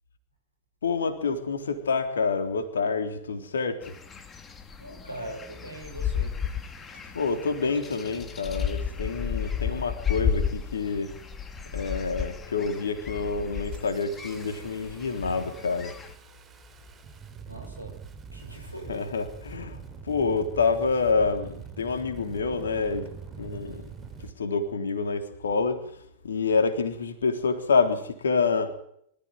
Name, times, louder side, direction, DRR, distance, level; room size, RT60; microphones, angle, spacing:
voice 1, 0.8-4.0 7.1-11.1 11.7-16.0 18.5-18.6 18.9-19.8 20.0-23.1 23.4-23.9 24.4-25.8 26.2-28.7, left 4 dB, 70° left, 3.5 m, -27 dB
sound 1, 3.8-16.1, left 7 dB, 20° left, 2.8 m, -33 dB
voice 2, 4.8-6.6 17.5-19.1, right 1 dB, 90° right, 6.7 m, -42 dB
Engine starting, 10.8-11.0 11.4-12.0 12.4-12.6 12.9-24.3, right 5 dB, 20° right, 3.9 m, -45 dB
25.5 x 15.0 x 9.6 m
figure-of-eight pair, 90°, 0 cm